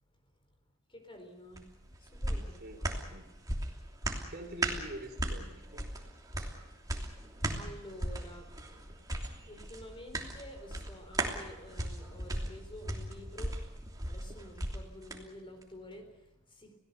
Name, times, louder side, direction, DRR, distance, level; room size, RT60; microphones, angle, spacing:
voice 1, 0.9-2.6 3.8-4.3 6.8-8.9 9.2-16.8, left 1 dB, 25° left, 6 dB, 4.0 m, -50 dB
sound 1, 1.5-15.2 15.6-15.7, right 1 dB, 15° right, 3.0 m, -38 dB
voice 2, 2.6-3.3 4.3-5.9, right 1 dB, 50° right, 5 dB, 3.8 m, -45 dB
29.0 x 18.0 x 6.9 m, 1.1 s
head